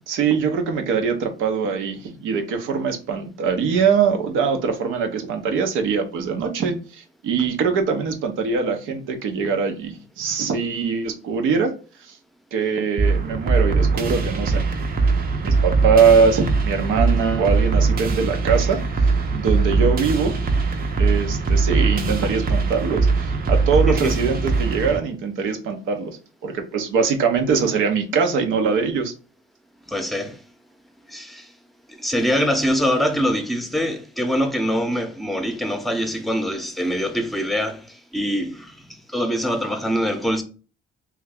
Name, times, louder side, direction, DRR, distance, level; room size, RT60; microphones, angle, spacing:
voice 1, 0.1-11.7 12.0-12.1 12.5-14.6 15.4-20.3 21.0-29.1, right 5 dB, 90° right, 0.7 m, -22 dB
sound 1, 13.0-25.0, right 4 dB, 45° right, 0.6 m, -21 dB
voice 2, 29.9-30.4 31.1-31.5 31.9-40.4, equal, ahead, 0.6 m, -24 dB
3.1 x 2.3 x 3.4 m
cardioid pair, 90°, 20 cm